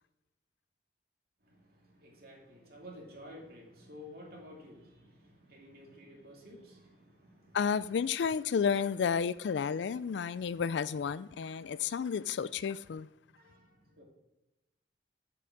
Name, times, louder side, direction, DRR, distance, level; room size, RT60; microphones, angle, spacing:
voice 1, 1.4-7.9 11.7-11.8 13.4-14.0, left 1 dB, 55° right, 2.6 m, -52 dB
voice 2, 7.5-13.1, left 6 dB, 70° left, 0.4 m, -31 dB
7.9 x 6.1 x 7.1 m
head